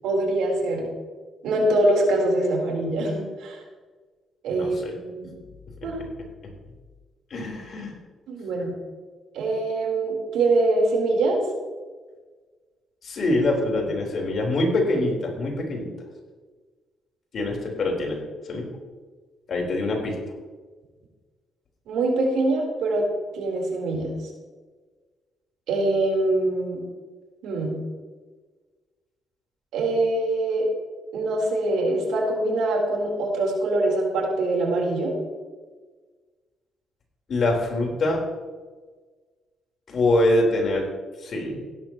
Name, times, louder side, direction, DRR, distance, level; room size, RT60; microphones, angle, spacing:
voice 1, 0.0-0.9 1.4-3.6 4.4-4.8 5.0-5.4 5.8-6.0 8.3-8.7 9.3-11.4 21.9-23.1 23.3-24.1 25.7-26.8 27.4-27.7 29.7-30.7 31.1-35.1, right 2 dB, 85° right, -1 dB, 3.9 m, -23 dB
voice 2, 4.5-4.9 6.4-6.5 7.3-7.9 13.0-15.9 17.3-18.7 19.5-20.2 37.3-38.2 39.9-40.9 41.2-41.6, left 2 dB, 55° left, 0 dB, 4.2 m, -24 dB
16.0 x 13.0 x 3.1 m, 1.4 s
cardioid pair, 90°, 0 cm